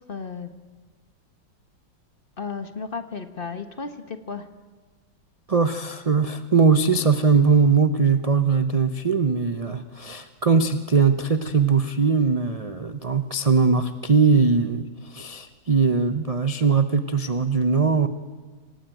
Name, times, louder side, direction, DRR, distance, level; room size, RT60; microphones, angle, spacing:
voice 1, 0.1-0.5 2.4-4.5, left 5 dB, 35° left, 9 dB, 1.2 m, -34 dB
voice 2, 5.5-14.8 15.1-18.1, right 5 dB, 50° right, 10 dB, 0.4 m, -20 dB
26.0 x 18.5 x 9.2 m, 1.4 s
omnidirectional pair, 1.9 m